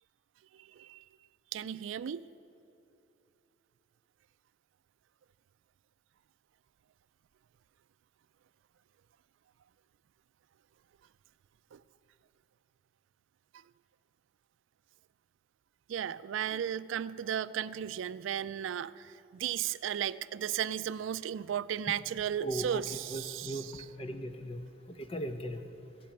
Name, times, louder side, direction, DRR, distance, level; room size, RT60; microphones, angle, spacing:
voice 1, 1.5-2.2 11.7-11.8 15.9-23.9, right 9 dB, 90° right, 15 dB, 0.3 m, -35 dB
voice 2, 22.4-22.8 23.1-24.6 24.9-25.6, right 1 dB, 30° left, 8 dB, 0.8 m, -38 dB
16.5 x 7.6 x 8.7 m, 2.7 s
head